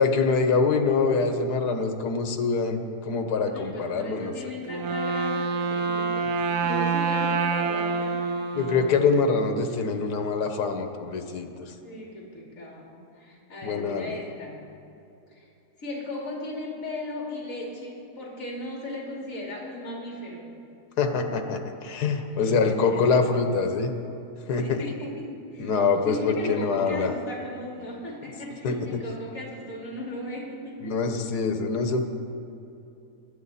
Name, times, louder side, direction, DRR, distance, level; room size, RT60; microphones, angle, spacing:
voice 1, 0.0-4.3 8.5-11.7 13.6-14.0 21.0-23.9 24.5-24.8 25.6-27.1 28.6-29.0 30.8-32.0, left 4 dB, 80° left, 6 dB, 1.6 m, -24 dB
voice 2, 3.5-8.3 11.8-14.6 15.3-15.5 15.8-20.5 22.3-23.1 24.6-30.9, left 1 dB, 55° left, -3 dB, 2.9 m, -37 dB
Wind instrument woodwind instrument, 4.6-9.5, right 4 dB, 75° right, 1.4 m, -27 dB
22.0 x 9.0 x 4.1 m, 2.8 s
omnidirectional pair, 1.7 m